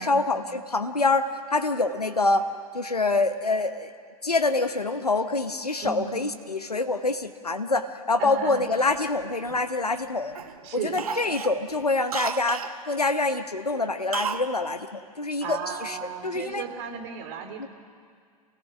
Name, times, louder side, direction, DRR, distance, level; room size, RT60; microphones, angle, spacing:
voice 1, 0.0-3.9 4.2-10.4 10.7-16.0 16.2-16.6 16.9-17.0 17.6-17.7, left 3 dB, 85° left, 9 dB, 0.9 m, -26 dB
voice 2, 8.2-8.6 10.6-11.0 15.4-17.7, right 6 dB, 45° right, 5 dB, 3.0 m, -35 dB
Cough, 8.7-10.0 10.3-10.6 10.9-12.8 14.1-14.5 14.8-14.9, right 6 dB, 70° right, 1.2 m, -33 dB
28.5 x 17.5 x 6.1 m, 2.1 s
figure-of-eight pair, 95°, 19 cm